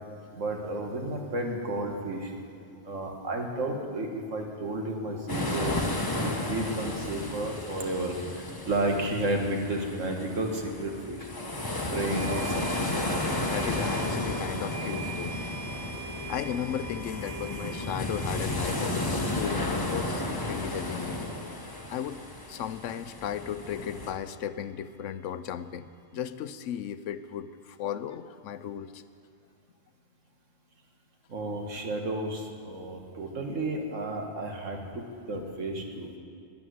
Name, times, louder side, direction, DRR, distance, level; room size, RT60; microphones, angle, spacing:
voice 1, 0.4-2.3 2.8-5.8 6.2-11.3 11.8-12.9 31.3-36.1, right 1 dB, 75° right, 2 dB, 1.9 m, -32 dB
sound 1, 5.3-24.1, left 1 dB, 20° left, 1.0 m, -33 dB
sound 2, 11.2-11.3 12.1-23.1, right 4 dB, 40° left, 1.3 m, -44 dB
voice 2, 13.5-15.3 16.3-21.2 21.9-22.2 22.5-29.0, left 9 dB, 75° left, 12 dB, 0.9 m, -35 dB
12.5 x 9.3 x 9.4 m, 2.3 s
omnidirectional pair, 1.3 m